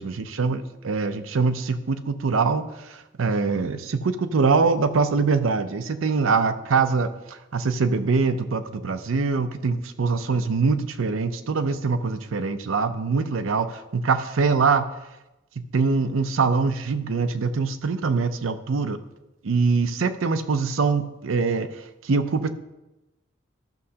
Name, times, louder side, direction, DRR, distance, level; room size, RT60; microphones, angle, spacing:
voice 1, 0.0-14.8 15.6-19.0 19.4-22.5, right 4 dB, 75° right, 10 dB, 0.5 m, -23 dB
13.0 x 6.3 x 2.8 m, 0.97 s
head